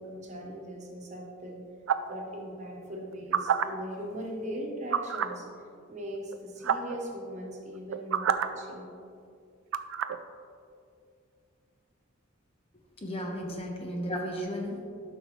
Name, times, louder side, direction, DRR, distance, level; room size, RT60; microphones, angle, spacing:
voice 1, 0.0-1.6 2.1-5.5 5.9-8.9 13.1-13.2, equal, 35° right, -1 dB, 1.2 m, -39 dB
sound 1, 1.9-2.2 3.1-3.6 4.9-5.4 6.3-6.4 6.6-7.0 7.8-8.5 9.7-10.2, right 8 dB, 70° right, 0.4 m, -27 dB
voice 2, 13.0-14.8, equal, 30° left, 1 dB, 0.9 m, -34 dB
12.0 x 5.4 x 3.1 m, 2.4 s
head